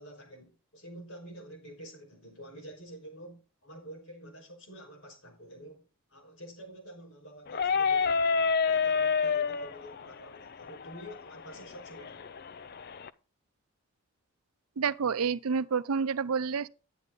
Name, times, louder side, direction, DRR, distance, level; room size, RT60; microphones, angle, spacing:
voice 1, 0.0-12.3, right 1 dB, 65° left, 5.2 m, -48 dB
sound 1, 7.5-13.1, left 5 dB, 45° left, 0.5 m, -29 dB
voice 2, 14.8-16.7, right 6 dB, 80° right, 0.6 m, -29 dB
10.5 x 9.3 x 3.9 m
head